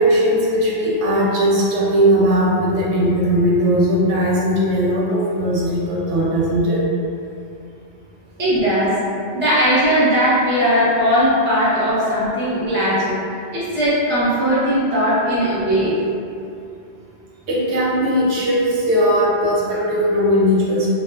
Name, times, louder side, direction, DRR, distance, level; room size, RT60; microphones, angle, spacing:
voice 1, 0.0-6.8 17.5-20.9, equal, 75° right, -6 dB, 0.9 m, -18 dB
voice 2, 8.4-9.0 9.3-13.2 13.5-16.0 19.7-19.8, equal, 15° right, -10 dB, 0.5 m, -18 dB
2.7 x 2.2 x 2.2 m, 2.6 s
omnidirectional pair, 1.2 m